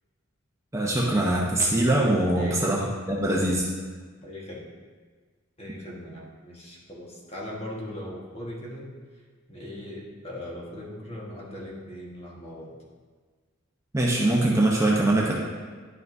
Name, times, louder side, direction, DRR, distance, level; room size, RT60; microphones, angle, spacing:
voice 1, 0.7-3.6 13.9-15.3, right 1 dB, 15° right, -3 dB, 0.7 m, -23 dB
voice 2, 2.4-2.7 4.2-4.6 5.6-8.9 9.5-12.7, left 1 dB, 30° left, -3 dB, 1.4 m, -39 dB
10.5 x 5.6 x 2.6 m, 1.5 s
head